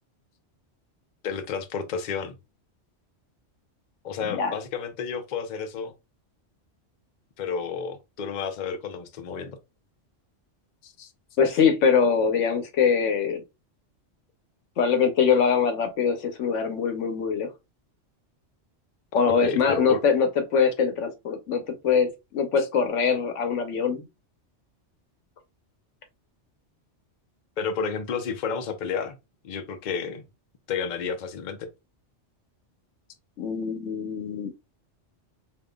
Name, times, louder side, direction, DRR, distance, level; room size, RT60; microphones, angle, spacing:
voice 1, 1.2-2.4 4.0-5.9 7.4-9.6 10.8-11.1 19.4-20.0 27.6-29.2 29.4-30.2 30.7-31.6, left 5 dB, 50° left, 0.6 m, -31 dB
voice 2, 11.4-13.4 14.8-17.5 19.1-24.1 33.4-34.5, left 6 dB, 90° left, 1.1 m, -23 dB
5.1 x 2.6 x 2.3 m
omnidirectional pair, 1.2 m